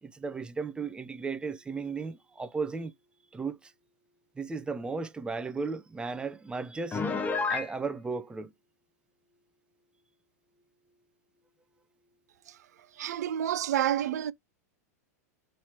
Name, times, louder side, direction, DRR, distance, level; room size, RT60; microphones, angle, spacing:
voice 1, 0.0-2.9 3.3-3.7 4.4-7.0 7.5-8.5, right 4 dB, 10° right, 0.5 m, -35 dB
Piano, 6.9-7.7, left 4 dB, 15° left, 0.8 m, -29 dB
voice 2, 13.0-14.3, right 11 dB, 75° right, 0.4 m, -29 dB
3.2 x 2.8 x 4.3 m
hypercardioid pair, 115°, 9 cm